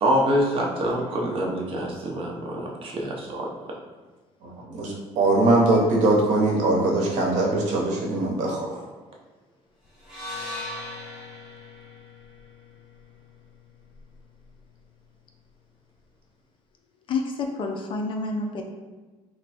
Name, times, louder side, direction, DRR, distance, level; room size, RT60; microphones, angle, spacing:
voice 1, 0.0-3.5, equal, 45° right, -1 dB, 0.7 m, -25 dB
voice 2, 4.4-8.8, right 2 dB, 80° right, -1 dB, 0.8 m, -22 dB
sound 1, 10.0-14.2, left 2 dB, 5° right, 1.0 m, -39 dB
voice 3, 17.1-18.6, left 3 dB, 40° left, 3 dB, 0.4 m, -28 dB
3.1 x 2.2 x 4.1 m, 1.3 s
cardioid pair, 155°, 12 cm